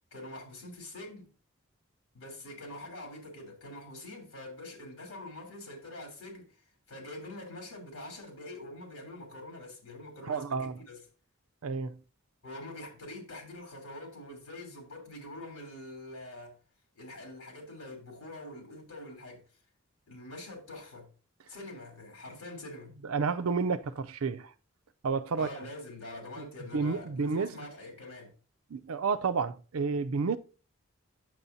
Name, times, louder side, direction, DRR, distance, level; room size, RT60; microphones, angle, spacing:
voice 1, 0.1-1.3 2.1-6.6 6.9-11.0 12.4-16.5 16.9-19.4 20.1-21.1 21.5-22.9 25.3-28.3, left 1 dB, 75° left, 3.3 m, -45 dB
voice 2, 10.3-10.8 11.6-12.0 23.0-24.5 25.0-25.5 26.4-26.5 26.7-27.7 28.7-30.4, right 5 dB, 80° right, 0.5 m, -30 dB
8.8 x 7.1 x 2.7 m
head